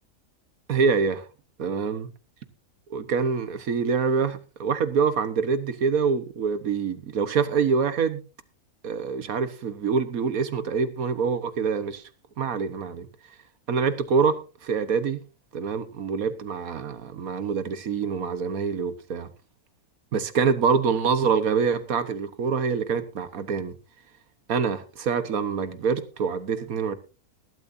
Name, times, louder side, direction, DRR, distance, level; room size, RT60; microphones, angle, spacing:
voice 1, 0.7-1.2 1.6-2.1 2.9-8.2 8.8-12.0 12.4-13.1 13.7-15.2 15.5-19.3 20.1-23.7 24.5-26.9, right 5 dB, 70° right, 1.6 m, -25 dB
19.5 x 12.5 x 2.7 m
omnidirectional pair, 1.6 m